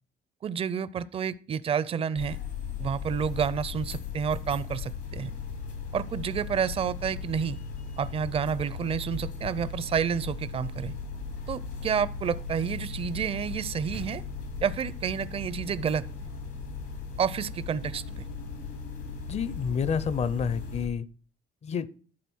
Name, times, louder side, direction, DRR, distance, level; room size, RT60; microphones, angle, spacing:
voice 1, 0.4-2.4 2.8-5.3 5.9-7.6 8.0-10.9 11.5-14.2 14.6-16.3 17.2-18.3, right 7 dB, 35° right, 0.5 m, -30 dB
sound 1, 2.2-20.9, left 5 dB, 85° left, 2.8 m, -37 dB
voice 2, 19.3-21.1 21.6-21.9, left 6 dB, 40° left, 0.6 m, -29 dB
11.5 x 4.0 x 6.2 m
cardioid pair, 110°, 17 cm